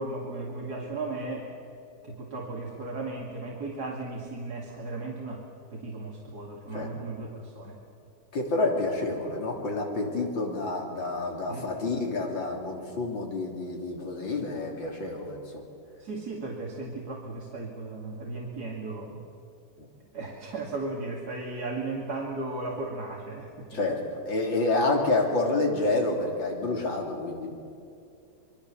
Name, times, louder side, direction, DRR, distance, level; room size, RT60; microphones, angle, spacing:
voice 1, 0.0-1.5 2.0-5.4 5.7-7.8 11.5-11.7 16.0-19.2 20.1-24.0, right 2 dB, 50° right, -2 dB, 2.8 m, -36 dB
voice 2, 8.3-15.6 19.8-19.9 23.7-24.0 24.3-27.5, left 2 dB, 70° left, 1 dB, 4.1 m, -28 dB
26.5 x 22.5 x 7.0 m, 2.6 s
omnidirectional pair, 2.2 m